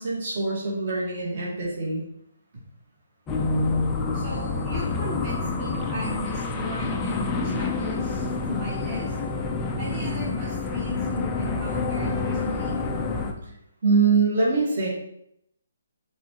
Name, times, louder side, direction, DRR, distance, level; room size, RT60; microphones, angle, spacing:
voice 1, 0.0-2.0 13.8-14.9, right 4 dB, 40° right, -4 dB, 1.9 m, -23 dB
sound 1, 3.3-13.3, left 3 dB, 10° left, 0.4 m, -28 dB
voice 2, 4.1-9.2 9.8-12.8, left 1 dB, 20° right, -6 dB, 1.3 m, -36 dB
5.8 x 3.8 x 4.6 m, 0.76 s
hypercardioid pair, 175°, 0 cm